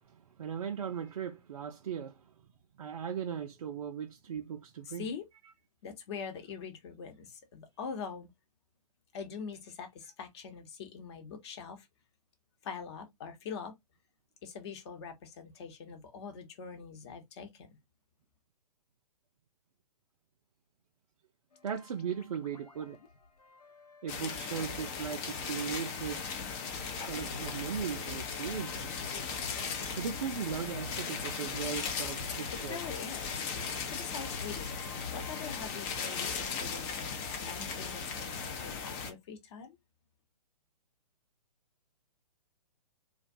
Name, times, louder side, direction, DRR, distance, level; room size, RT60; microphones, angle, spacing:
voice 1, 0.1-2.3 2.8-5.1 21.6-23.0 24.0-26.3 27.0-28.8 30.0-32.8, right 7 dB, 60° right, 0.4 m, -38 dB
voice 2, 4.8-5.3 5.8-8.3 9.1-11.9 12.6-13.7 14.4-17.7 32.5-33.4 33.8-34.7 35.1-39.8, left 6 dB, 40° left, 0.9 m, -43 dB
sound 1, 21.5-25.6 26.0-35.6, left 4 dB, 80° left, 0.8 m, -49 dB
sound 2, 24.1-39.1, left 5 dB, 20° left, 0.4 m, -37 dB
2.3 x 2.2 x 2.6 m
figure-of-eight pair, 130°, 20 cm